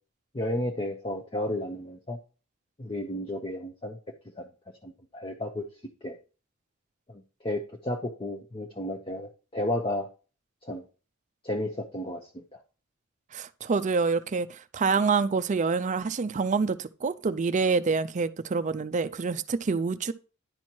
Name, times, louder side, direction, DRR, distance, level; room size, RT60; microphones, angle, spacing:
voice 1, 0.3-2.2 2.8-4.0 4.4-4.5 4.8-5.7 6.0-6.2 7.1-10.1 10.7-10.8 11.4-12.4, left 1 dB, 25° left, 0.8 m, -32 dB
voice 2, 13.3-20.1, right 4 dB, 35° right, 0.4 m, -27 dB
10.5 x 4.4 x 4.5 m
head